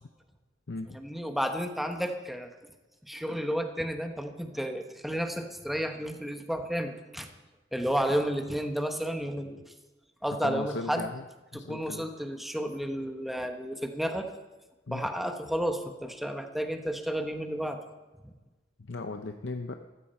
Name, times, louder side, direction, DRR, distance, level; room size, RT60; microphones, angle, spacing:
voice 1, 0.9-2.5 3.0-7.3 7.7-9.6 10.2-11.1 11.5-14.3 14.9-17.8 18.2-18.3, equal, ahead, 5 dB, 1.0 m, -32 dB
voice 2, 10.4-11.3 11.5-12.0 14.9-15.0 18.9-19.8, left 3 dB, 70° left, 6 dB, 0.7 m, -37 dB
14.5 x 14.5 x 4.4 m, 1.2 s
head